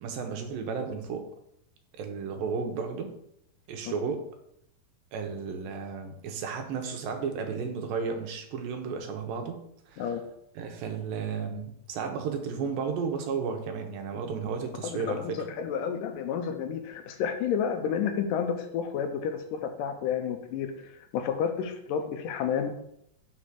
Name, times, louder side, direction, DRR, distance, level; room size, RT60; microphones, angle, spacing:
voice 1, 0.0-1.2 2.0-3.1 3.7-4.2 5.1-9.6 9.9-10.0 10.6-15.5, right 5 dB, 85° right, 5 dB, 2.8 m, -33 dB
voice 2, 14.8-22.7, left 7 dB, 75° left, 6 dB, 2.3 m, -31 dB
6.2 x 4.8 x 5.9 m, 0.75 s
omnidirectional pair, 4.0 m